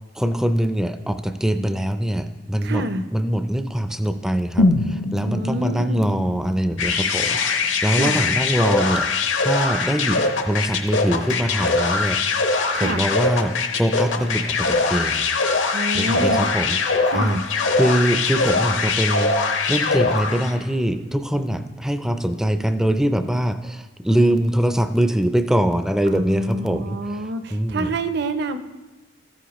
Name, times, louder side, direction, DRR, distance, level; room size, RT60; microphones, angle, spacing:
voice 1, 0.1-2.9 3.1-12.2 12.7-15.3 15.9-16.8 17.1-17.4 17.8-27.9, right 1 dB, 5° right, 9 dB, 0.4 m, -23 dB
voice 2, 2.6-3.0 5.2-6.3 7.9-8.2 12.7-13.1 15.7-16.5 17.1-17.4 26.1-28.6, right 2 dB, 55° right, 9 dB, 0.6 m, -27 dB
sound 1, 4.6-8.5 8.9-9.0, left 2 dB, 55° left, 0.5 m, -25 dB
sound 2, 6.8-20.6, left 4 dB, 70° left, 0.9 m, -22 dB
13.5 x 9.8 x 3.0 m, 1.2 s
head